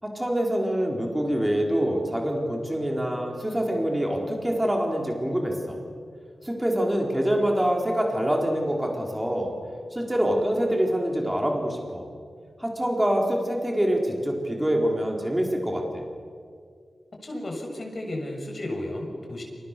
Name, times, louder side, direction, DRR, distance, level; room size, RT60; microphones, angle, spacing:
voice 1, 0.0-5.8 6.4-9.5 9.9-12.0 12.6-16.0, equal, 10° right, 0 dB, 4.3 m, -25 dB
voice 2, 17.2-19.4, left 1 dB, 40° left, 1 dB, 6.8 m, -33 dB
28.5 x 28.5 x 6.9 m, 2.2 s
wide cardioid pair, 85°, 0 cm